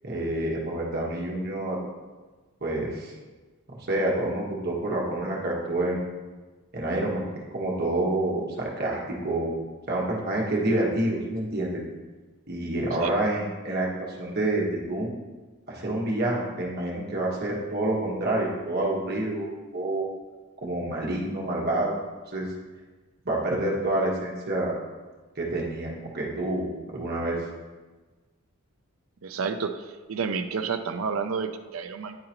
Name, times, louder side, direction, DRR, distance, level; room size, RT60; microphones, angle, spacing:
voice 1, 0.0-1.8 2.6-3.1 3.9-6.0 6.7-7.2 7.5-9.0 9.2-9.5 9.9-11.8 12.5-15.1 15.7-20.1 20.6-22.0 22.3-22.5 23.2-24.7 25.4-26.7 26.9-27.4, right 1 dB, 45° right, -3 dB, 1.3 m, -28 dB
voice 2, 29.2-32.2, right 5 dB, 70° right, 8 dB, 0.4 m, -30 dB
9.9 x 3.8 x 2.9 m, 1.3 s
head